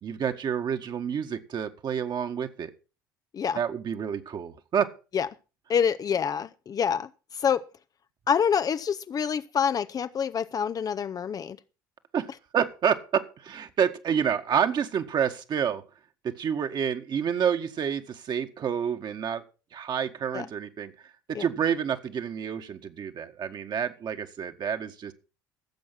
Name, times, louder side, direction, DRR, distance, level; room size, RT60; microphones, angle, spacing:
voice 1, 0.0-2.7 3.5-4.9 12.1-12.3 12.5-15.8 16.2-19.4 19.7-20.9 21.3-25.1, right 8 dB, 45° right, 1.8 m, -28 dB
voice 2, 5.7-7.6 8.3-11.6 20.3-20.5 21.3-21.4, left 7 dB, 35° left, 0.7 m, -27 dB
16.5 x 7.8 x 5.9 m
hypercardioid pair, 65°, 11 cm